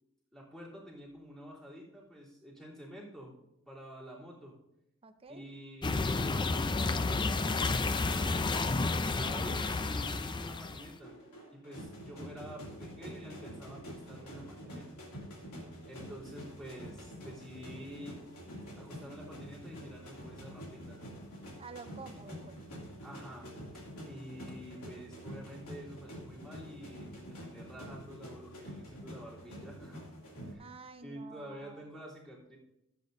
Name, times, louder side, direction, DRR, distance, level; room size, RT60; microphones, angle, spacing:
voice 1, 0.3-3.4 3.7-4.6 5.3-8.6 9.0-11.1 11.5-15.0 15.9-18.2 18.8-21.0 23.0-30.0 30.4-30.7 31.0-32.6, equal, 5° left, -7 dB, 3.3 m, -49 dB
voice 2, 5.0-5.4 21.6-22.6 30.6-31.9, right 4 dB, 25° right, 9 dB, 0.6 m, -49 dB
sound 1, 5.8-10.9, left 3 dB, 20° left, 0.4 m, -31 dB
sound 2, 11.0-30.5, equal, 85° left, 2.6 m, -47 dB
14.5 x 8.4 x 2.7 m, 0.84 s
head